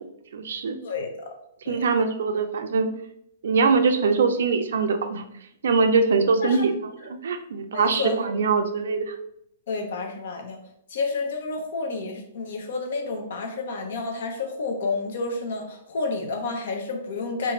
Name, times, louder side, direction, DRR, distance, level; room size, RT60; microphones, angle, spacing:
voice 1, 0.3-0.8 1.7-2.9 3.4-5.2 5.6-6.7 7.0-9.2, right 4 dB, 75° right, 8 dB, 0.4 m, -22 dB
voice 2, 0.8-1.3 1.7-1.9 6.4-6.6 7.7-8.3 9.7-10.6 10.9-17.5, left 3 dB, 65° left, 3 dB, 0.7 m, -30 dB
2.6 x 2.5 x 3.0 m, 0.76 s
hypercardioid pair, 130°, 0 cm